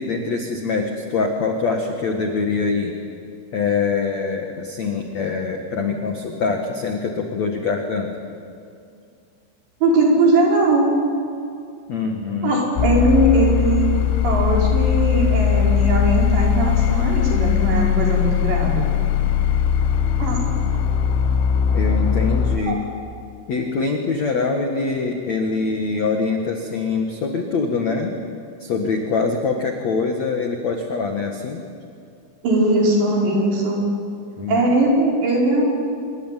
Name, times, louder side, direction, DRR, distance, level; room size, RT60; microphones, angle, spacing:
voice 1, 0.0-2.9 3.5-8.1 11.9-12.6 20.6-20.7 21.7-22.8 23.5-28.1 28.6-31.6 34.4-34.6, left 4 dB, 60° left, 3 dB, 1.9 m, -24 dB
voice 2, 9.8-10.9 12.4-18.9 20.2-20.5 22.6-22.7 32.4-33.8 34.5-35.6, right 2 dB, 60° right, -2 dB, 6.9 m, -19 dB
sound 1, 12.8-22.6, left 8 dB, 75° left, 3.2 m, -19 dB
26.5 x 22.5 x 9.1 m, 2.4 s
omnidirectional pair, 5.8 m